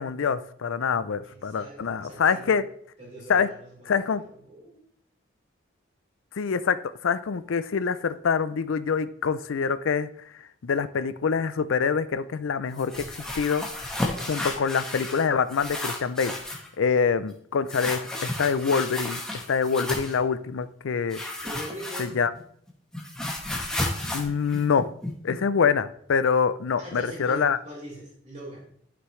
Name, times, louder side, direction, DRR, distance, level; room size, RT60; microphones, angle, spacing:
voice 1, 0.0-2.6 3.3-3.5 3.9-4.2 6.3-6.8 7.0-10.1 10.6-13.7 14.3-16.3 16.8-21.2 22.0-22.3 24.1-24.9 25.2-27.6, left 6 dB, 75° left, 14 dB, 0.4 m, -25 dB
voice 2, 1.2-2.5 3.0-4.8 14.1-14.3 16.8-17.0 21.4-22.1 26.8-28.7, right 1 dB, 35° right, -4 dB, 3.3 m, -42 dB
sound 1, 12.7-15.2 15.5-16.7 17.7-20.2 21.1-22.4 22.7-25.3, left 1 dB, 5° left, 1.2 m, -32 dB
11.0 x 5.9 x 3.2 m, 0.64 s
head